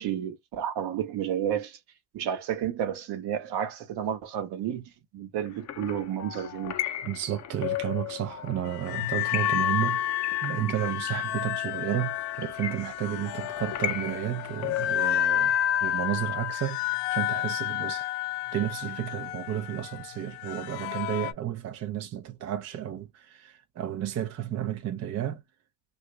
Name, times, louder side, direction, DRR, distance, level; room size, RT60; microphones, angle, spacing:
voice 1, 0.0-1.8 2.1-6.8, right 9 dB, 55° right, 0.9 m, -31 dB
sound 1, 5.4-15.2, left 11 dB, 35° left, 0.6 m, -37 dB
voice 2, 7.0-15.6 15.8-18.1 18.5-25.4, right 11 dB, 35° right, 0.5 m, -32 dB
sound 2, 8.7-21.3, left 11 dB, 90° left, 0.6 m, -30 dB
2.8 x 2.5 x 3.2 m
supercardioid pair, 105°, 49 cm